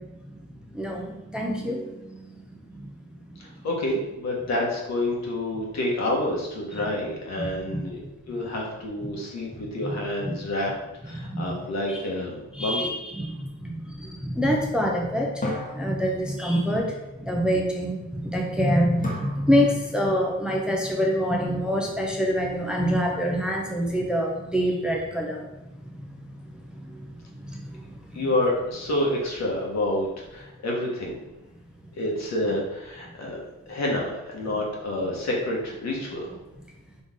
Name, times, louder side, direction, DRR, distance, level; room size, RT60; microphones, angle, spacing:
voice 1, 0.7-1.9 7.4-7.5 7.7-7.8 10.3-10.4 11.2-11.4 12.6-12.9 13.2-13.3 13.6-13.7 14.0-15.3 15.7-16.9 17.2-25.4 27.5-27.6, equal, 5° right, -1 dB, 0.7 m, -25 dB
voice 2, 3.4-8.0 8.3-10.7 11.0-12.9 28.1-31.2 31.9-36.4, left 1 dB, 60° left, -2 dB, 1.5 m, -28 dB
sound 1, 11.8-13.4 15.4-16.8 19.0-20.1, left 1 dB, 25° left, 1.2 m, -37 dB
4.0 x 3.4 x 3.7 m, 0.97 s
cardioid pair, 90°, 30 cm